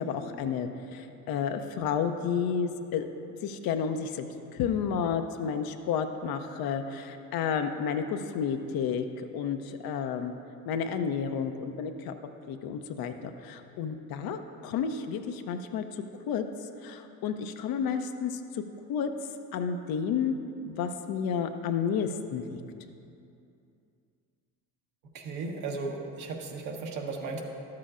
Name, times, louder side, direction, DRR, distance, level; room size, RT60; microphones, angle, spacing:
voice 1, 0.0-3.0 3.4-4.3 4.5-9.1 9.3-10.3 10.7-12.1 12.5-15.8 16.3-16.4 16.8-18.6 18.9-19.1 19.5-20.4 20.6-22.6, left 7 dB, 50° left, 7 dB, 0.7 m, -31 dB
voice 2, 25.1-27.4, right 4 dB, 60° right, 1 dB, 1.4 m, -35 dB
12.5 x 7.5 x 2.5 m, 2.6 s
hypercardioid pair, 60°, 46 cm